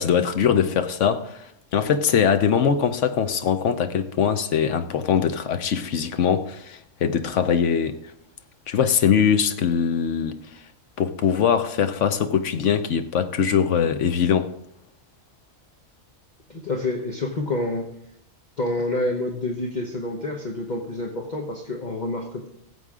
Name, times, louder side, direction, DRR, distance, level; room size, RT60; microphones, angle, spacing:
voice 1, 0.0-8.0 8.7-10.4 11.0-14.5, left 7 dB, 65° left, 1.1 m, -22 dB
voice 2, 16.5-17.9 18.6-22.5, left 2 dB, 35° left, 1.1 m, -28 dB
16.0 x 7.9 x 3.7 m
omnidirectional pair, 1.4 m